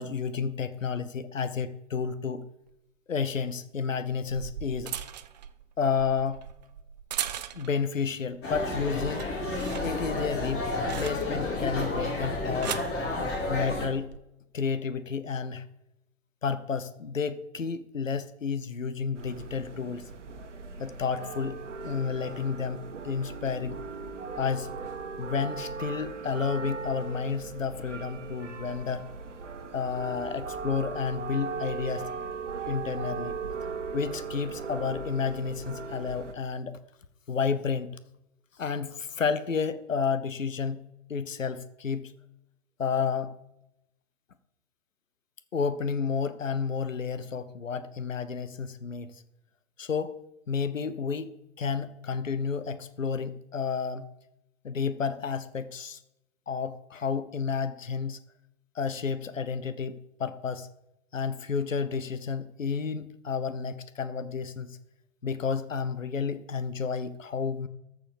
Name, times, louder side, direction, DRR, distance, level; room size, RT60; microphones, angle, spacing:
voice 1, 0.0-2.5 3.1-5.0 5.8-6.4 7.5-9.3 9.8-10.7 11.0-12.8 13.5-14.1 14.5-15.7 16.4-20.1 20.8-21.6 21.8-23.8 24.4-24.7 25.2-29.1 29.7-32.1 32.7-33.4 33.9-36.8 37.3-37.9 38.6-42.1 42.8-43.3 45.5-49.2 49.8-50.2 50.5-54.1 54.6-56.0 56.5-58.2 58.7-60.7 61.1-64.8 65.2-67.7, left 6 dB, 75° left, 12 dB, 0.9 m, -31 dB
sound 1, 2.7-2.8 3.9-7.9 8.3-8.7 9.0-11.5 12.3-13.0 13.9-14.2, right 10 dB, 35° right, 0.6 m, -39 dB
sound 2, 8.4-13.9, left 2 dB, 25° left, 3.1 m, -31 dB
sound 3, 19.1-36.3, right 4 dB, 65° right, 1.3 m, -38 dB
14.0 x 4.9 x 6.7 m, 0.85 s
figure-of-eight pair, 115°, 39 cm